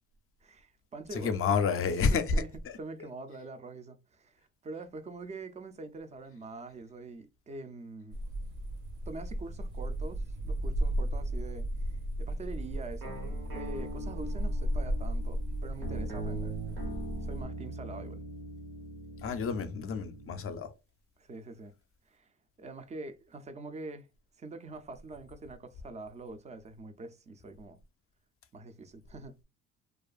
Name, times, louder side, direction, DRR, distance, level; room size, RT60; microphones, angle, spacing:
voice 1, 0.4-1.4 2.1-2.5 2.8-8.2 9.1-13.2 13.5-16.5 17.2-18.2 21.2-21.7 22.1-22.3 22.6-24.1 24.4-27.8 28.5-29.3, right 3 dB, 25° right, 0.3 m, -44 dB
voice 2, 1.1-2.2 19.2-20.7, left 5 dB, 45° left, 0.5 m, -29 dB
sound 1, 8.1-17.4, equal, 65° right, 0.8 m, -35 dB
sound 2, 13.0-20.5, right 2 dB, 85° right, 1.2 m, -41 dB
2.5 x 2.4 x 2.3 m
cardioid pair, 110°, 32 cm